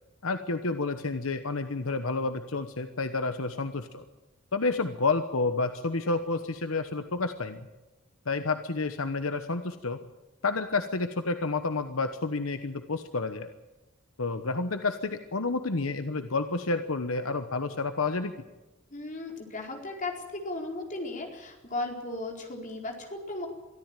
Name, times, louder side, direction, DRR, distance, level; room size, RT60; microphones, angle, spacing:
voice 1, 0.2-4.0 4.5-7.7 8.3-10.0 10.4-13.5 14.2-18.3, left 3 dB, 70° left, 8 dB, 1.1 m, -30 dB
voice 2, 18.9-23.5, left 2 dB, 35° left, 2 dB, 4.4 m, -36 dB
23.5 x 14.0 x 9.1 m, 1.1 s
head